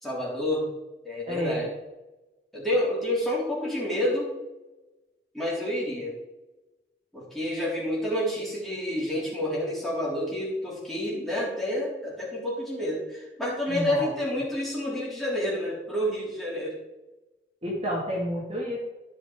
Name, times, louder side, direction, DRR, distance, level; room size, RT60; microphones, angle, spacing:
voice 1, 0.0-0.7 1.0-1.7 2.5-4.3 5.3-6.1 7.1-16.8, left 1 dB, ahead, -7 dB, 3.8 m, -29 dB
voice 2, 1.3-1.7 13.7-14.1 17.6-18.8, equal, 35° right, -4 dB, 2.2 m, -30 dB
14.0 x 5.8 x 5.0 m, 1.1 s
head